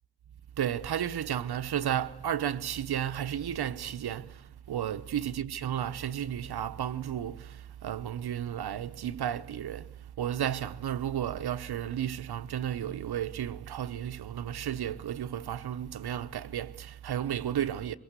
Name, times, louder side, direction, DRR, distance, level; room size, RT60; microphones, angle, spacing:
voice 1, 0.6-18.0, right 10 dB, 75° right, 1.0 m, -33 dB
23.5 x 21.0 x 8.1 m
wide cardioid pair, 150°, 38 cm